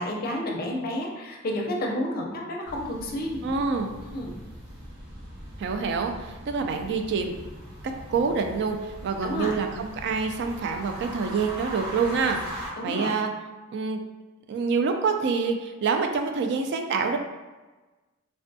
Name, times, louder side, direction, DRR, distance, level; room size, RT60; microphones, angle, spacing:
voice 1, 0.0-3.4 4.0-4.4 9.2-9.6 12.8-13.2, left 1 dB, 45° left, 0 dB, 0.5 m, -30 dB
sound 1, 2.6-12.7, equal, 70° right, 1.0 m, -40 dB
voice 2, 3.4-3.9 5.6-7.3 8.1-8.8 9.0-13.3 13.7-14.0 14.5-17.2, right 5 dB, 55° right, 5 dB, 0.3 m, -26 dB
3.3 x 2.2 x 2.6 m, 1.2 s
head